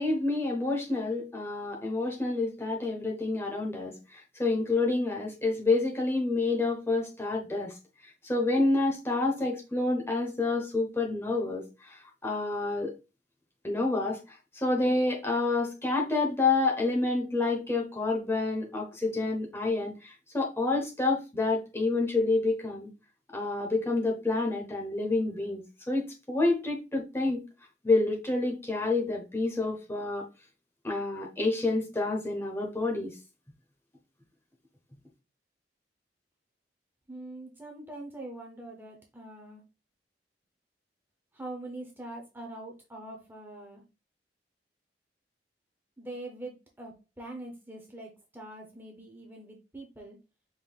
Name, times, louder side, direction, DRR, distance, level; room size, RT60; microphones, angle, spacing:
voice 1, 0.0-7.7 8.2-12.0 12.2-13.0 13.6-14.2 14.5-22.9 23.3-27.4 27.8-30.3 30.8-33.1, left 3 dB, 15° left, 0.9 m, -28 dB
voice 2, 37.1-39.6 41.3-43.8 46.0-50.2, right 2 dB, 10° right, 0.7 m, -43 dB
5.2 x 3.7 x 2.4 m
head